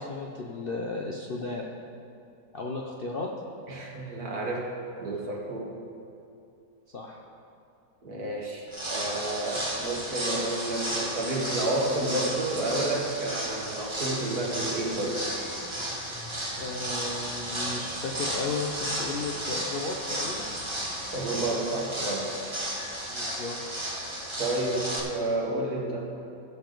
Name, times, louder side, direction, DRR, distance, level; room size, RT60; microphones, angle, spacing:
voice 1, 0.0-1.7 2.5-3.3 6.9-7.2 16.6-20.5 23.1-23.6, left 3 dB, 50° left, -1 dB, 0.7 m, -34 dB
voice 2, 3.7-4.7 5.0-5.8 8.0-15.3 21.1-22.4 24.4-26.0, right 2 dB, 60° right, -2 dB, 2.0 m, -30 dB
sound 1, 8.7-25.0, right 1 dB, 20° right, 1.3 m, -33 dB
sound 2, 14.4-21.6, equal, 30° left, 2.1 m, -50 dB
16.5 x 7.0 x 3.9 m, 2.7 s
omnidirectional pair, 1.8 m